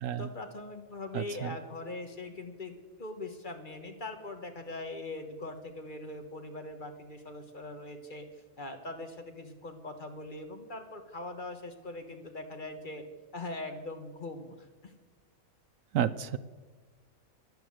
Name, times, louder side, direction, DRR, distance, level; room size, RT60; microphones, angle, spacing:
voice 1, 0.2-8.3 8.6-13.1 13.3-14.9, left 2 dB, 35° left, 6 dB, 1.4 m, -41 dB
voice 2, 15.9-16.4, right 10 dB, 70° right, 15 dB, 0.9 m, -29 dB
11.5 x 10.5 x 7.7 m, 1.4 s
omnidirectional pair, 1.5 m